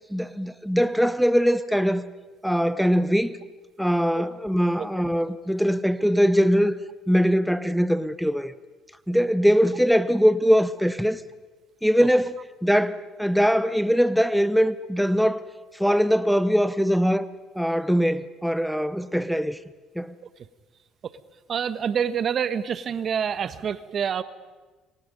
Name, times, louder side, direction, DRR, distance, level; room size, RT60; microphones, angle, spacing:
voice 1, 0.1-2.1 2.4-3.3 3.8-6.7 7.1-8.5 9.1-11.2 11.8-12.3 12.6-15.4 15.7-17.3 17.6-19.6 20.0-20.1, equal, ahead, 0.9 m, -22 dB
voice 2, 21.5-24.2, right 7 dB, 50° right, 1.3 m, -27 dB
27.5 x 23.5 x 5.3 m
supercardioid pair, 70°, 0 cm